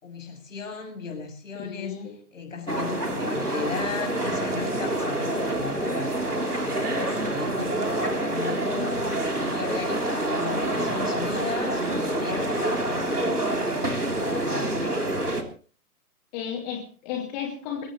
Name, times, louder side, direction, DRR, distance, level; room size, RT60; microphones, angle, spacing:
voice 1, 0.0-2.0 2.3-9.0 9.4-15.2, left 5 dB, 55° left, 4 dB, 7.4 m, -36 dB
voice 2, 1.5-2.2 16.3-17.9, left 8 dB, 30° left, 2 dB, 2.5 m, -33 dB
sound 1, 2.7-15.4, right 1 dB, 90° right, 3.6 m, -27 dB
23.0 x 17.5 x 3.1 m, 0.40 s
figure-of-eight pair, 125°, 45 cm